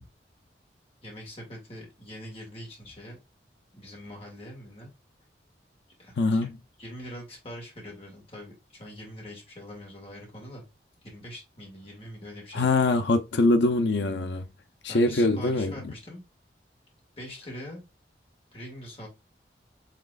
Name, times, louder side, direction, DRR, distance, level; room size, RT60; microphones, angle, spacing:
voice 1, 1.0-3.2 3.7-4.9 6.0-6.5 6.8-10.6 11.0-12.7 14.9-16.2 17.2-17.8 18.5-19.1, equal, 30° left, 1.9 m, -43 dB
voice 2, 6.2-6.5 12.5-14.4 14.8-15.7, left 2 dB, 75° left, 0.5 m, -23 dB
5.9 x 3.4 x 2.3 m
head